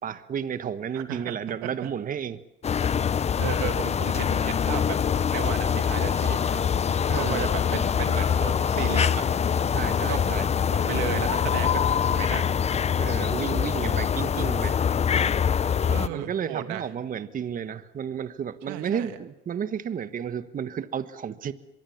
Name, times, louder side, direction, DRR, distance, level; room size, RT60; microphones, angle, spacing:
voice 1, 0.0-2.4 7.1-7.5 9.7-10.5 13.0-14.9 16.1-21.5, right 8 dB, 40° right, 1.3 m, -32 dB
voice 2, 0.9-1.4 1.6-1.9 3.4-5.0 5.3-6.6 7.2-9.2 10.0-12.6 15.8-16.8 18.7-19.2, right 12 dB, 85° right, 2.3 m, -34 dB
sound 1, 2.6-16.1, left 7 dB, 30° left, 0.8 m, -24 dB
24.5 x 22.5 x 7.2 m
supercardioid pair, 85°, 21 cm